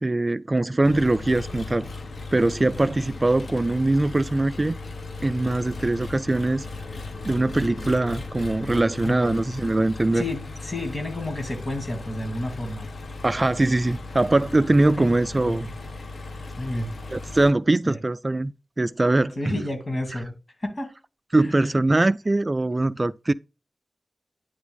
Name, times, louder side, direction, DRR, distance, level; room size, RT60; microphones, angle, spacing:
voice 1, 0.0-1.9 2.3-4.8 5.2-6.6 7.2-10.2 13.2-15.7 17.1-19.6 21.3-23.3, right 2 dB, 30° right, 0.3 m, -22 dB
Engine, 0.8-17.5, left 3 dB, 75° left, 0.9 m, -37 dB
voice 2, 9.0-9.3 10.1-12.8 14.8-15.1 15.5-15.7 16.6-16.9 17.8-18.0 19.4-20.3 20.6-20.9 21.4-21.7, left 1 dB, 45° left, 2.6 m, -30 dB
9.4 x 3.4 x 3.7 m
wide cardioid pair, 65°, 0 cm